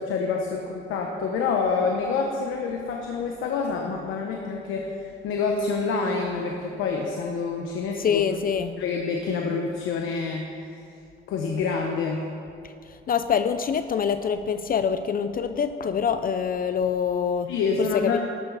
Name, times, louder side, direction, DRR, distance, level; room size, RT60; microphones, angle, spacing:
voice 1, 0.0-8.2 8.8-10.8 11.3-12.2 17.5-18.2, left 4 dB, 90° left, 1 dB, 1.1 m, -27 dB
voice 2, 8.0-8.8 12.6-17.5 17.8-18.2, left 7 dB, 45° left, 10 dB, 0.5 m, -25 dB
13.5 x 12.5 x 4.1 m, 2.5 s
cardioid pair, 90°, 20 cm